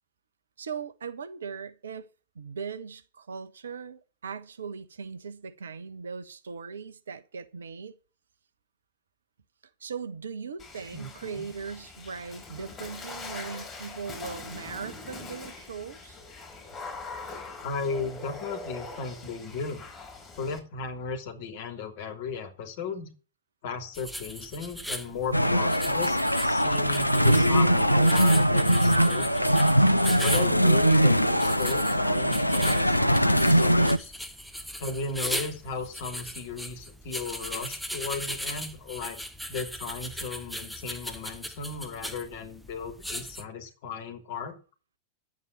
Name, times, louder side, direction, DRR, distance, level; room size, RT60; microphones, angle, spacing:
voice 1, 0.6-2.1 2.3-7.9 9.8-16.2, right 6 dB, 70° right, 1.3 m, -39 dB
Water / Splash splatter, 10.6-20.6, left 3 dB, 20° left, 5.0 m, -42 dB
voice 2, 10.9-11.4 17.6-19.8 20.4-23.1 23.6-26.2 26.4-29.5 30.2-34.1 34.8-39.2 39.5-44.6, left 4 dB, 50° left, 3.0 m, -36 dB
sound 1, 23.9-43.4, equal, ahead, 1.5 m, -38 dB
sound 2, 25.3-34.0, equal, 90° left, 0.6 m, -21 dB
11.0 x 8.4 x 8.6 m
figure-of-eight pair, 90°, 0 cm